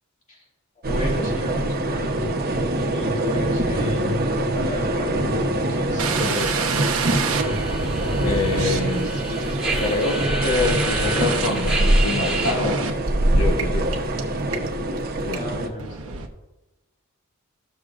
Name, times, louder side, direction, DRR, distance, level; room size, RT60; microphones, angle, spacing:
voice 1, 0.8-5.1 5.7-6.4 15.3-16.2, equal, 35° left, -3 dB, 2.3 m, -33 dB
sound 1, 0.8-15.7, right 1 dB, 45° right, 0.9 m, -24 dB
sound 2, 6.0-13.1 13.6-13.7 13.9-14.2 14.5-15.0 15.3-15.4 15.8-16.3, right 5 dB, 80° right, 0.9 m, -29 dB
voice 2, 6.2-6.9 8.2-9.2 9.8-12.8 13.3-13.9 15.2-15.4, left 3 dB, 70° left, 0 dB, 1.0 m, -26 dB
sound 3, 6.2-12.5, right 2 dB, 5° right, 1.5 m, -31 dB
13.5 x 6.5 x 2.5 m, 1.0 s
head